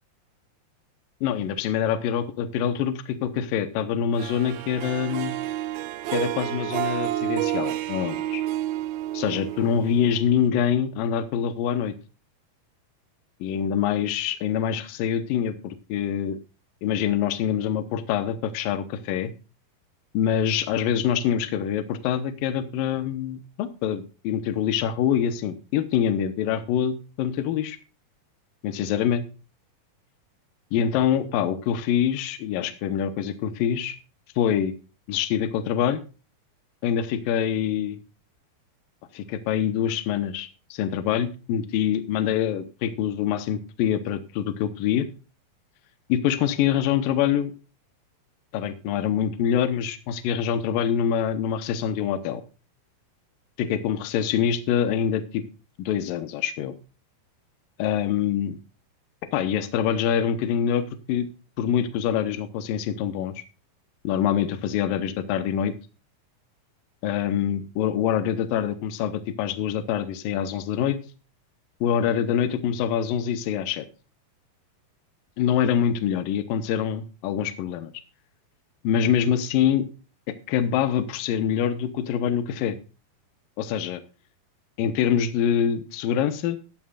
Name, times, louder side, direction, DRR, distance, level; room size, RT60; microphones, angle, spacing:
voice 1, 1.2-5.3 6.1-8.4 9.1-11.9 13.4-16.4 16.8-19.3 20.1-27.8 28.6-29.2 30.7-34.0 34.4-34.7 35.1-36.0 36.8-38.0 39.1-45.1 46.1-47.5 48.5-52.4 53.6-55.4 55.8-56.7 57.8-58.6 59.3-61.3 61.6-63.4 64.0-65.7 67.0-71.0 71.8-73.9 75.4-77.9 78.8-79.9 80.5-82.8 83.6-84.0 84.8-86.6, left 9 dB, 75° left, 11 dB, 2.7 m, -25 dB
Harp, 4.2-10.5, right 13 dB, 90° right, 2.6 m, -30 dB
15.0 x 11.0 x 2.5 m, 0.33 s
omnidirectional pair, 4.2 m